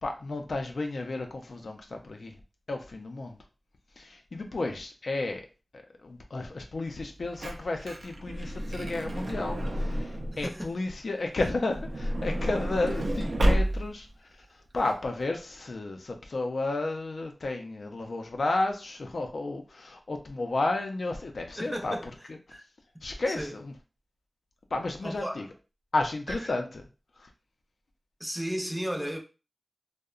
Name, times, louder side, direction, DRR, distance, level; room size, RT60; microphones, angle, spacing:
voice 1, 0.0-2.3 2.7-3.4 4.0-5.4 6.0-14.1 14.7-21.9 23.0-23.7 24.7-25.5 25.9-26.8 27.2-27.3, left 2 dB, 85° left, 0.4 m, -32 dB
Truck / Door, 7.0-10.5 11.5-14.1 14.8-14.9 15.1-15.2, equal, 90° right, 0.4 m, -30 dB
voice 2, 10.4-10.8 21.6-22.1 22.5-22.6 23.3-23.5 25.0-25.4 26.3-26.5 28.2-29.2, equal, 10° right, 0.5 m, -34 dB
2.7 x 2.1 x 2.4 m
wide cardioid pair, 65°, 0 cm